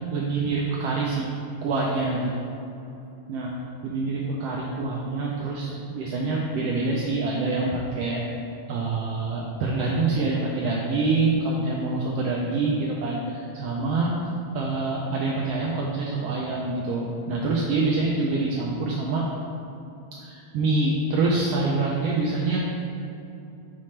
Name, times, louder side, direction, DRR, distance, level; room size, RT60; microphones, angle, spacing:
voice 1, 0.1-1.2 1.6-2.3 3.3-3.5 3.8-8.2 8.7-14.1 14.5-19.2 20.2-22.6, right 3 dB, 90° right, -2 dB, 1.4 m, -26 dB
7.4 x 4.2 x 3.2 m, 2.8 s
omnidirectional pair, 3.3 m